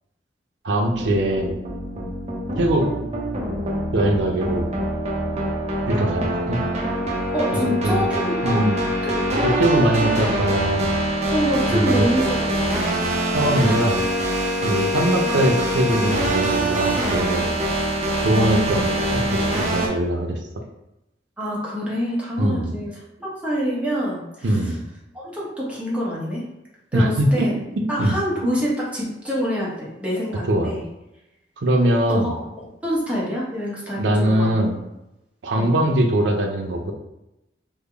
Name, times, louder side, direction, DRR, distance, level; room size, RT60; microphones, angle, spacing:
voice 1, 0.6-1.6 2.6-3.1 3.9-4.7 5.9-6.6 7.5-8.1 8.4-8.8 9.4-10.9 11.7-12.1 13.3-14.1 14.6-17.5 18.2-20.4 22.4-22.7 24.4-24.8 26.9-27.5 28.0-28.2 30.5-30.7 31.6-32.3 34.0-34.8 35.4-36.9, right 1 dB, 80° right, 2 dB, 0.5 m, -21 dB
sound 1, 0.9-19.9, right 1 dB, 40° right, 0.6 m, -24 dB
voice 2, 7.3-8.6 9.0-10.1 11.3-13.1 17.6-17.7 21.4-22.9 23.2-24.7 25.1-26.4 26.9-27.5 27.9-30.9 32.0-34.5 35.5-35.9, equal, 5° right, -6 dB, 0.9 m, -26 dB
3.4 x 2.1 x 3.4 m, 0.91 s
head